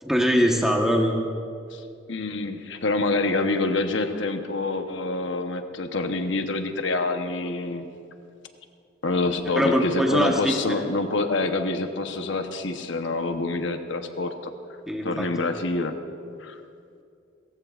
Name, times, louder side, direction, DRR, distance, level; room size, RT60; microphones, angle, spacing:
voice 1, 0.0-1.1 9.6-10.6 14.9-15.3, equal, ahead, 1 dB, 1.2 m, -22 dB
voice 2, 1.7-7.9 9.0-14.5 15.0-16.0 16.4-16.6, left 3 dB, 75° left, 6 dB, 1.0 m, -27 dB
29.0 x 15.0 x 2.5 m, 2.4 s
head